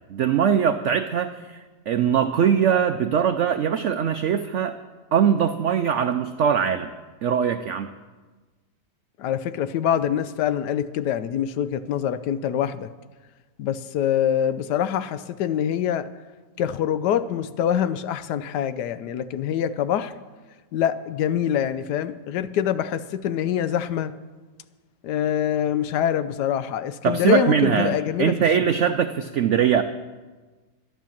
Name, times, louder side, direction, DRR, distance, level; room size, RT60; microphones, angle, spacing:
voice 1, 0.1-4.7 5.1-6.9 7.2-7.9 27.0-29.8, right 8 dB, 85° right, 9 dB, 0.6 m, -21 dB
voice 2, 9.2-12.9 13.6-16.1 16.6-20.1 20.7-24.1 25.0-28.4, left 9 dB, 75° left, 14 dB, 1.1 m, -25 dB
12.0 x 10.5 x 7.2 m, 1.3 s
omnidirectional pair, 1.9 m